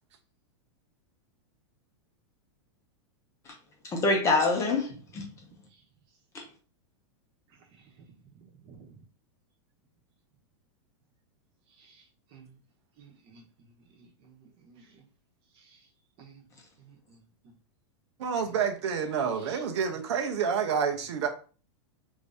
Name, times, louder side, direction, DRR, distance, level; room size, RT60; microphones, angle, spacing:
voice 1, 3.8-5.2 6.3-6.4, left 3 dB, 20° left, 0.7 m, -26 dB
voice 2, 5.4-5.8 7.7-8.0 8.6-9.0 11.7-12.5 13.0-15.0 15.5-15.9 16.2-16.4 16.8-17.6 18.4-18.5 19.3-19.6 19.9-20.1 20.6-20.8, right 5 dB, 35° right, 1.0 m, -56 dB
voice 3, 18.2-21.3, right 6 dB, 65° right, 0.7 m, -28 dB
2.9 x 2.7 x 3.4 m
supercardioid pair, 150°, 15 cm